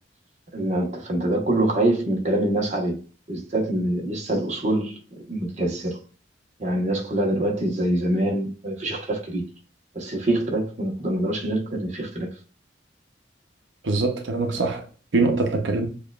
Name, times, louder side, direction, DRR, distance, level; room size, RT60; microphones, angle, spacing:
voice 1, 0.5-3.0 3.3-5.0 5.3-6.0 6.6-9.4 9.9-12.3, right 1 dB, 40° right, 1.0 m, -25 dB
voice 2, 13.8-15.9, right 3 dB, 85° right, 0.7 m, -23 dB
6.8 x 2.4 x 2.3 m
head